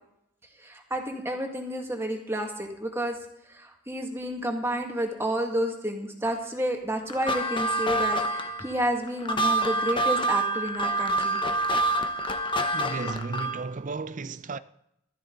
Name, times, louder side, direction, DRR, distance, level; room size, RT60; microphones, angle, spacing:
voice 1, 0.6-3.2 3.5-11.4, right 1 dB, 15° right, 2.0 m, -30 dB
sound 1, 7.1-13.7, right 2 dB, 25° left, 0.9 m, -27 dB
voice 2, 12.7-14.6, right 4 dB, 45° right, 0.5 m, -34 dB
15.0 x 13.0 x 3.9 m
head